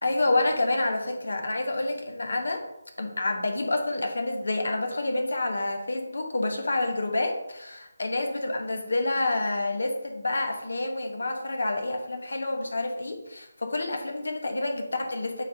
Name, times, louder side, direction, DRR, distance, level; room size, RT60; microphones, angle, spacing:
voice 1, 0.0-2.6 3.0-15.4, left 2 dB, 70° left, 4 dB, 1.3 m, -28 dB
8.9 x 3.5 x 4.0 m, 0.90 s
figure-of-eight pair, 160°, 0 cm